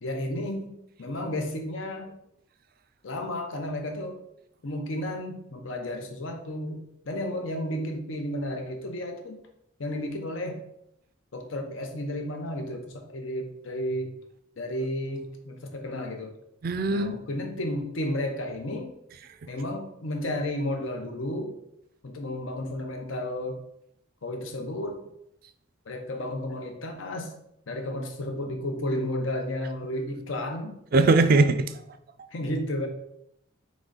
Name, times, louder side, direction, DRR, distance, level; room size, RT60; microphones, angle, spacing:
voice 1, 0.0-2.2 3.0-4.2 4.6-9.4 9.8-10.6 11.3-14.1 14.6-16.3 16.9-18.9 19.5-21.6 22.0-23.6 24.2-25.0 25.9-27.3 27.7-30.7 32.3-32.9, left 1 dB, 80° left, 4 dB, 0.7 m, -32 dB
voice 2, 16.6-17.2 30.9-31.7, right 3 dB, 50° right, 10 dB, 0.3 m, -20 dB
3.9 x 3.1 x 3.8 m, 0.78 s
head